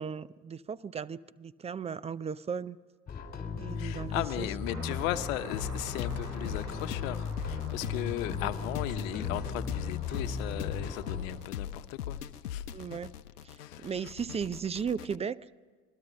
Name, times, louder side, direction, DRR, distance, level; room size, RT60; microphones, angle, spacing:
voice 1, 0.0-2.8 3.6-4.5 8.4-8.5 12.7-13.1 13.4-15.5, right 6 dB, 15° right, 0.5 m, -36 dB
sound 1, 3.1-11.2, left 5 dB, 20° left, 4.4 m, -37 dB
voice 2, 3.7-12.2 12.5-12.7 13.6-13.9, left 14 dB, 60° left, 1.2 m, -37 dB
sound 2, 4.7-11.4, right 1 dB, 85° right, 7.6 m, -49 dB
sound 3, 5.5-15.2, left 9 dB, 80° left, 0.8 m, -40 dB
26.5 x 21.5 x 5.3 m
figure-of-eight pair, 75°, 45 cm